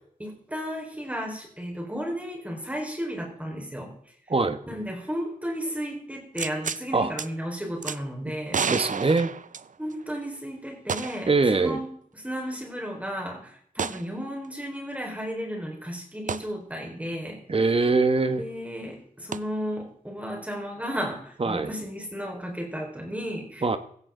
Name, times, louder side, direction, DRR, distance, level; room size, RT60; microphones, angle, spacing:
voice 1, 0.2-4.0 4.7-8.6 9.8-17.4 18.4-23.8, equal, 10° right, 0 dB, 4.7 m, -34 dB
sound 1, 6.4-6.8 7.2-7.3 7.8-8.0 8.5-10.0 10.9-11.3 11.7-11.8 13.8-14.1 16.3-16.5 19.3-19.4, right 6 dB, 65° right, 0.6 m, -30 dB
voice 2, 8.7-9.3 11.3-11.8 17.5-18.4 21.4-21.7 23.6-23.8, right 3 dB, 40° right, 10 dB, 1.2 m, -22 dB
16.5 x 14.0 x 3.9 m, 0.62 s
wide cardioid pair, 95°, 14 cm